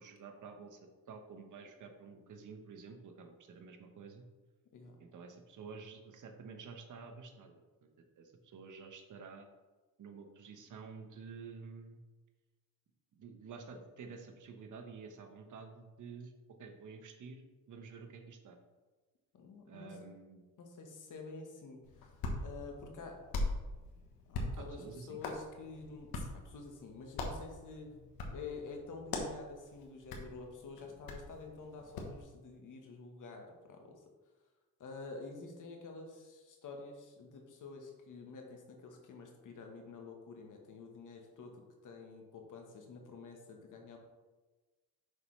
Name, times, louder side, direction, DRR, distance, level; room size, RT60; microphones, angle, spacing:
voice 1, 0.0-4.2 5.0-7.9 8.2-9.5 10.0-12.0 13.2-16.3 16.6-17.4 17.7-18.6 19.7-20.4 24.6-25.2, right 5 dB, 55° right, 5 dB, 1.1 m, -50 dB
voice 2, 19.3-20.0 20.6-22.1 22.4-23.2 24.3-27.9 28.3-34.0 34.8-44.0, left 4 dB, 55° left, 3 dB, 1.3 m, -49 dB
Hands, 21.8-32.2, left 2 dB, 75° left, 1.2 m, -42 dB
6.6 x 5.4 x 3.2 m, 1.2 s
cardioid pair, 95°, 36 cm